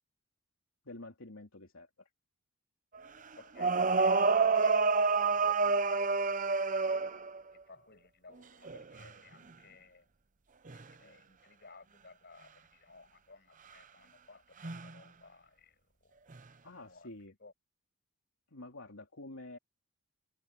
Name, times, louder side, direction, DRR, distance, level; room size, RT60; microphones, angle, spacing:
voice 1, 0.8-1.9 16.6-17.3 18.5-19.6, left 2 dB, 75° left, 3.0 m, -48 dB
sound 1, 3.0-3.1 3.6-7.4 8.6-9.1 10.7-10.8 14.6-14.9 16.3-16.4, right 4 dB, 35° right, 0.8 m, -28 dB
voice 2, 3.4-7.1 7.5-10.1 10.7-16.2 16.8-17.1 17.4-17.5, left 3 dB, 50° left, 6.5 m, -57 dB
head